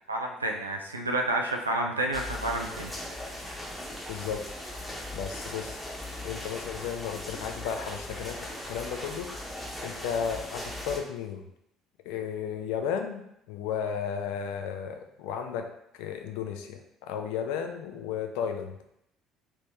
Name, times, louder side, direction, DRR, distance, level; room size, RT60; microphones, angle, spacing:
voice 1, 0.1-2.9 3.4-3.5, right 2 dB, 90° right, 1 dB, 0.4 m, -30 dB
sound 1, 2.1-11.0, left 1 dB, 5° left, 1.0 m, -39 dB
voice 2, 4.1-4.4 5.1-5.8 6.2-8.4 8.7-9.3 9.8-11.4 12.1-13.2 13.5-15.6 16.0-18.7, left 7 dB, 70° left, 5 dB, 0.4 m, -33 dB
3.2 x 3.2 x 2.8 m, 0.77 s
figure-of-eight pair, 55°, 0 cm